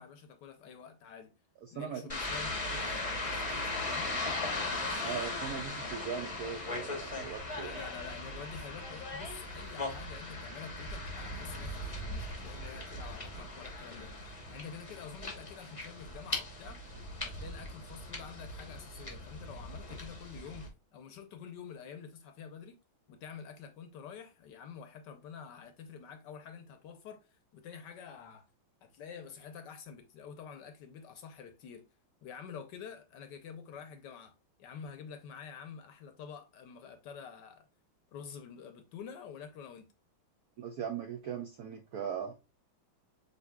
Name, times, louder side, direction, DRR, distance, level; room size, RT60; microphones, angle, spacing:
voice 1, 0.0-1.3 1.7-4.1 7.6-14.1 14.5-16.8 17.2-22.8 23.1-27.2 27.5-28.4 28.8-31.8 32.2-37.7 38.1-39.8, left 7 dB, 70° left, 1.1 m, -48 dB
voice 2, 1.6-2.0 5.0-7.8 40.6-42.3, right 7 dB, 85° right, 0.8 m, -39 dB
sound 1, 2.1-20.7, left 2 dB, 30° left, 0.6 m, -39 dB
7.9 x 2.7 x 2.3 m
omnidirectional pair, 2.3 m